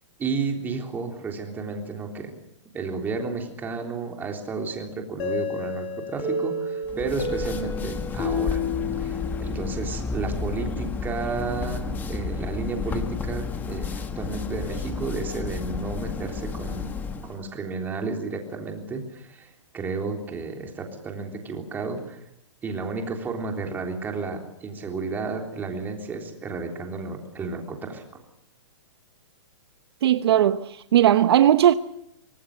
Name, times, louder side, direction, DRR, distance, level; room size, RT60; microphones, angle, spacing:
voice 1, 0.2-2.3 2.7-8.6 9.0-13.9 14.2-16.9 17.3-22.2 22.6-28.2, right 4 dB, 10° right, 3.5 m, -32 dB
sound 1, 5.2-9.9, left 3 dB, 30° left, 4.0 m, -30 dB
sound 2, 6.8-17.4, left 5 dB, 10° left, 1.4 m, -31 dB
voice 2, 30.0-31.7, right 11 dB, 55° right, 1.0 m, -18 dB
25.0 x 19.0 x 7.7 m
hypercardioid pair, 160°, 16 cm